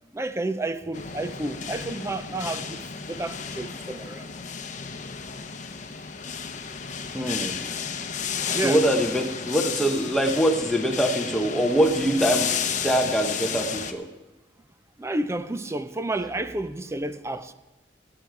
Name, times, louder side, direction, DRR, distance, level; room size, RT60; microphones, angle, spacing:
voice 1, 0.1-2.8 3.1-4.3 6.9-7.1 8.5-8.8 15.0-17.5, right 2 dB, 15° right, 0.5 m, -30 dB
sound 1, 0.9-13.9, left 6 dB, 45° left, 0.8 m, -32 dB
voice 2, 7.1-7.6 8.6-12.5 12.8-14.1, right 1 dB, ahead, 1.0 m, -23 dB
17.0 x 9.0 x 4.7 m
head